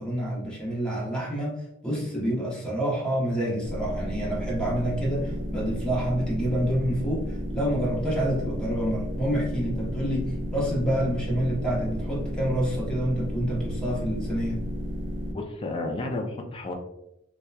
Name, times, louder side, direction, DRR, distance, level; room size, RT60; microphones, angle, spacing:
voice 1, 0.0-1.6 1.8-14.6, equal, 5° left, -5 dB, 0.7 m, -28 dB
sound 1, 3.6-15.3, equal, 55° right, 0.5 m, -32 dB
voice 2, 15.3-16.7, left 2 dB, 25° left, 3 dB, 0.3 m, -31 dB
2.7 x 2.1 x 2.2 m, 0.84 s
head